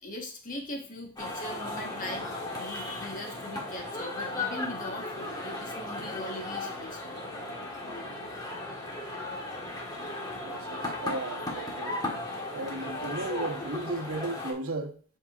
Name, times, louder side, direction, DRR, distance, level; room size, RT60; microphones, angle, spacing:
voice 1, 0.0-7.2 9.5-10.5, left 1 dB, 40° left, 1.4 m, -41 dB
sound 1, 1.2-14.5, left 2 dB, 20° left, 1.5 m, -36 dB
voice 2, 10.4-12.0 12.5-14.9, right 2 dB, 75° right, 1.0 m, -35 dB
7.8 x 5.5 x 2.5 m
head